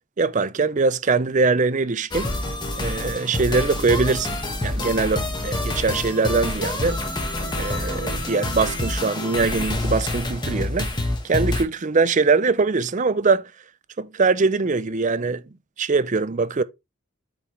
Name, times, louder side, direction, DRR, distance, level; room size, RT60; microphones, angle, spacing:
voice 1, 0.2-2.3 2.8-7.0 7.5-10.9 11.2-13.5 14.0-15.4 15.8-16.6, right 4 dB, 35° right, 0.5 m, -22 dB
sound 1, 2.1-11.6, left 1 dB, 20° left, 1.7 m, -27 dB
8.7 x 5.6 x 3.3 m
head